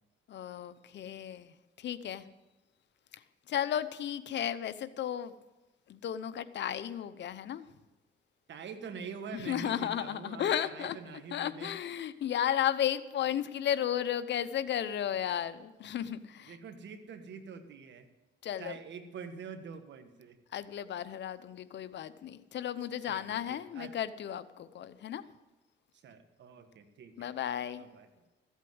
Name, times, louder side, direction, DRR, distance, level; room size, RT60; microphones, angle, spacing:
voice 1, 0.3-2.2 3.1-3.2 3.5-5.3 5.9-7.6 9.3-16.6 18.4-18.7 20.5-25.2 27.2-27.8, left 10 dB, 65° left, 13 dB, 0.8 m, -34 dB
voice 2, 8.5-11.7 16.5-18.1 18.6-20.4 23.1-23.9 25.9-27.3 27.8-28.1, right 6 dB, 65° right, 8 dB, 1.6 m, -45 dB
14.5 x 8.2 x 7.9 m, 1.1 s
cardioid pair, 90°, 20 cm